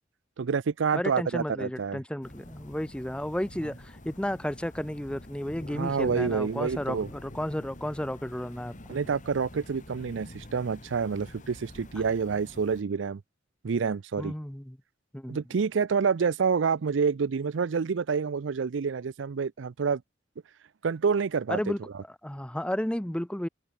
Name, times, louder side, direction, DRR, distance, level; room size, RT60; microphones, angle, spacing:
voice 1, 0.4-2.0 5.7-7.1 8.9-13.2 13.6-14.3 15.3-20.0 20.8-21.6, right 5 dB, 75° right, 0.5 m, -28 dB
voice 2, 0.9-8.8 14.2-14.8 15.1-15.4 21.5-21.8 22.2-23.5, equal, 5° left, 0.7 m, -32 dB
sound 1, 2.2-12.8, left 1 dB, 40° left, 2.6 m, -46 dB
head